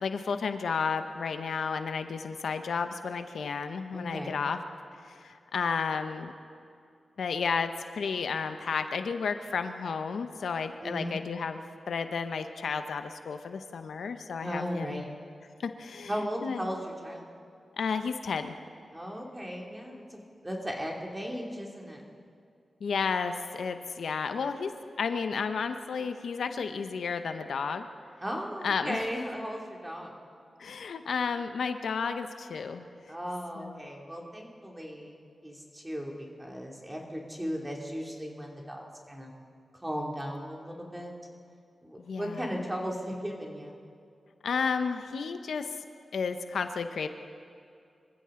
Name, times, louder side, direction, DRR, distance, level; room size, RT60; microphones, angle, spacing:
voice 1, 0.0-4.6 5.0-6.3 7.2-15.0 15.6-16.1 16.4-16.7 17.8-18.6 22.8-24.7 25.0-27.9 28.6-29.1 30.6-32.9 33.6-33.7 42.0-42.5 44.4-45.7 46.1-47.1, left 5 dB, 85° left, 8 dB, 0.8 m, -32 dB
voice 2, 3.9-4.4 10.8-11.2 14.4-15.1 16.1-17.2 18.9-22.0 28.2-30.1 33.1-39.3 39.8-41.1 41.8-43.7, equal, 10° right, -1 dB, 2.6 m, -36 dB
25.0 x 15.0 x 3.8 m, 2.4 s
wide cardioid pair, 95°, 0 cm